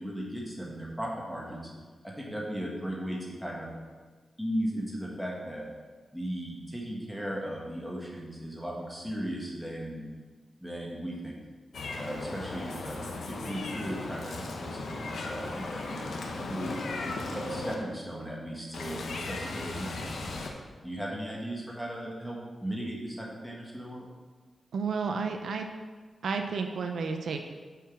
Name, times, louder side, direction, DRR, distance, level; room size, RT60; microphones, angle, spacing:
voice 1, 0.0-1.7 2.0-3.7 4.4-5.6 6.1-10.0 10.6-11.4 12.0-16.8 17.3-20.5 20.8-24.1, equal, ahead, -3 dB, 1.7 m, -37 dB
Meow, 11.7-17.7 18.7-20.5, left 3 dB, 80° left, 0.9 m, -37 dB
voice 2, 24.7-25.7 26.2-27.4, right 5 dB, 80° right, 5 dB, 0.5 m, -31 dB
6.6 x 4.7 x 6.0 m, 1.4 s
cardioid pair, 70°, 0 cm